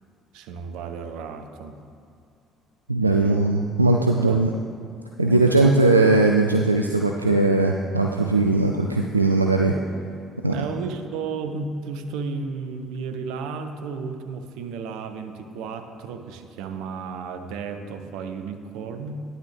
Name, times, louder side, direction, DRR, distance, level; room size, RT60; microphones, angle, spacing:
voice 1, 0.3-1.8 3.0-3.4 4.2-4.5 5.2-5.8 10.5-19.2, right 5 dB, 65° right, 7 dB, 0.7 m, -33 dB
voice 2, 2.9-4.5 5.2-9.7 10.4-10.5, right 2 dB, 90° right, 1 dB, 0.3 m, -19 dB
10.0 x 9.0 x 3.4 m, 2.4 s
figure-of-eight pair, 50°, 0 cm